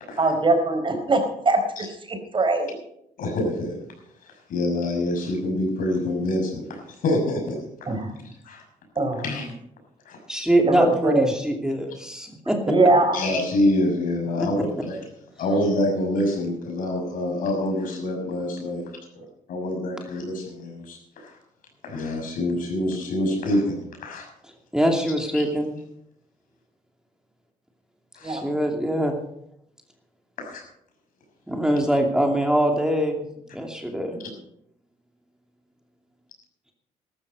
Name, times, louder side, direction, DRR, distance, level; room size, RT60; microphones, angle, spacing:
voice 1, 0.2-2.8 7.9-8.1 9.0-9.2 10.7-11.3 12.7-13.2 28.2-28.4, right 2 dB, 35° right, 6 dB, 4.3 m, -22 dB
voice 2, 3.2-3.8 4.5-7.9 8.4-8.6 9.2-9.5 10.1-10.2 13.1-15.0 15.4-18.9 19.1-21.4 21.8-24.3 25.3-25.4 28.1-28.4 30.4-30.6, left 1 dB, 70° left, 3 dB, 6.1 m, -26 dB
voice 3, 10.3-12.6 14.4-14.5 24.7-25.7 28.2-29.2 31.5-33.3 33.5-34.2, right 1 dB, 5° right, 2 dB, 2.6 m, -23 dB
13.5 x 13.5 x 5.4 m, 0.75 s
supercardioid pair, 75°, 14 cm